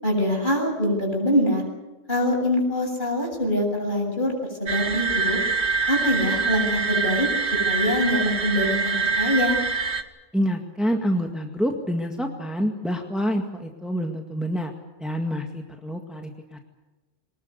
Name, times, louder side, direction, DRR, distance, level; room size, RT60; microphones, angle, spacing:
voice 1, 0.0-1.6 2.1-4.3 4.6-5.4 5.9-7.3 7.7-9.6, left 1 dB, 45° left, 1 dB, 7.9 m, -24 dB
sound 1, 4.7-10.0, right 4 dB, 65° right, 1.6 m, -25 dB
voice 2, 10.3-14.7 15.0-16.6, equal, ahead, 3 dB, 2.0 m, -27 dB
24.0 x 20.0 x 8.2 m, 1.1 s
omnidirectional pair, 1.2 m